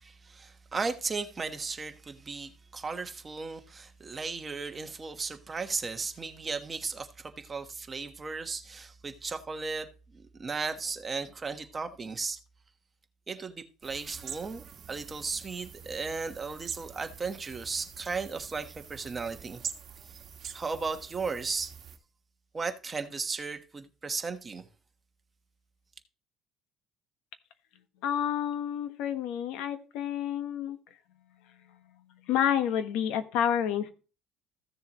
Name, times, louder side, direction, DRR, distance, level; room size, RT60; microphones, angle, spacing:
voice 1, 0.0-12.4 13.3-19.6 20.1-20.2 20.5-21.7 22.5-24.7, right 4 dB, 25° right, 1.2 m, -36 dB
sound 1, 13.8-22.0, right 7 dB, 45° right, 1.7 m, -45 dB
voice 2, 28.0-30.8 32.2-33.9, left 9 dB, 85° left, 1.3 m, -29 dB
15.0 x 6.9 x 3.0 m
cardioid pair, 125°, 0 cm